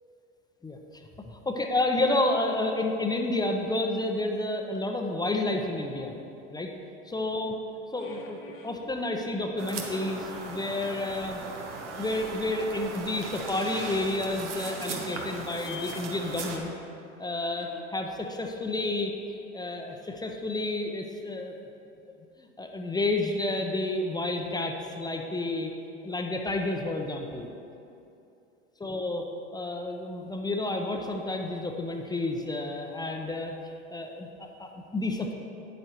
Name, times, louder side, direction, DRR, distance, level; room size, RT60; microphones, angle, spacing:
voice 1, 0.6-6.1 6.5-6.7 7.0-7.6 7.9-11.4 12.0-16.7 17.2-19.1 19.5-21.5 22.4-25.7 26.0-27.5 28.8-29.2 29.5-33.5 33.9-35.3, left 2 dB, 10° left, 3 dB, 0.6 m, -30 dB
sound 1, 3.7-4.3 7.9-8.9 9.4-10.8 13.9-14.0 15.1-16.0 17.4-17.8, left 6 dB, 60° left, 1.1 m, -47 dB
sound 2, 9.6-16.6, right 4 dB, 75° right, 1.1 m, -38 dB
8.8 x 8.1 x 3.0 m, 2.7 s
hypercardioid pair, 80°, 35 cm